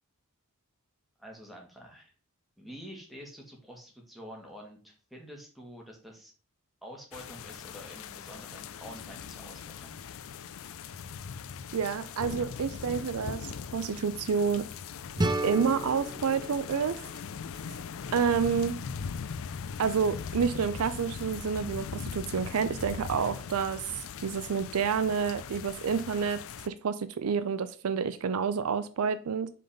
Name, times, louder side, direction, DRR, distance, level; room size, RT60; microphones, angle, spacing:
voice 1, 1.2-2.1 2.6-6.3 6.8-10.2, equal, ahead, 1.8 m, -47 dB
sound 1, 7.1-26.7, left 6 dB, 65° left, 0.4 m, -40 dB
voice 2, 11.7-14.7 15.4-17.0 18.1-18.8 19.8-26.4 26.7-29.5, right 6 dB, 75° right, 0.5 m, -29 dB
sound 2, 15.2-18.1, right 2 dB, 20° right, 0.6 m, -34 dB
5.4 x 4.0 x 5.1 m
head